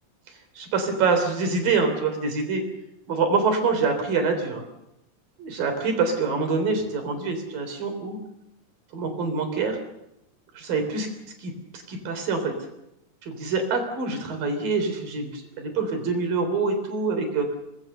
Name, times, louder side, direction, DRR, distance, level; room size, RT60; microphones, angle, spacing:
voice 1, 0.5-2.6 3.1-4.6 5.4-8.2 8.9-9.8 10.6-11.1 11.4-12.6 13.2-17.5, right 4 dB, 80° right, 6 dB, 5.4 m, -25 dB
25.0 x 20.0 x 6.8 m, 0.87 s
omnidirectional pair, 4.0 m